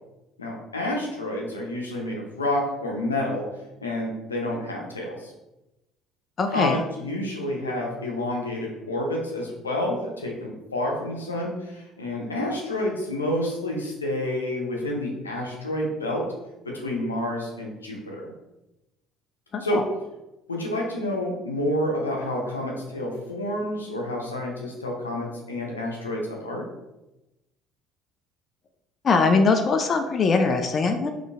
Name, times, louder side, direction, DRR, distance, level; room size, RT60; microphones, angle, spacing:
voice 1, 0.4-3.5 3.8-5.3 6.5-16.3 16.6-18.3 19.6-19.8 20.5-26.7, left 1 dB, 90° left, -1 dB, 0.6 m, -29 dB
voice 2, 6.4-6.8 19.5-19.8 29.0-31.1, left 4 dB, 40° left, 5 dB, 0.4 m, -21 dB
3.7 x 3.1 x 2.5 m, 0.98 s
figure-of-eight pair, 60°, 0 cm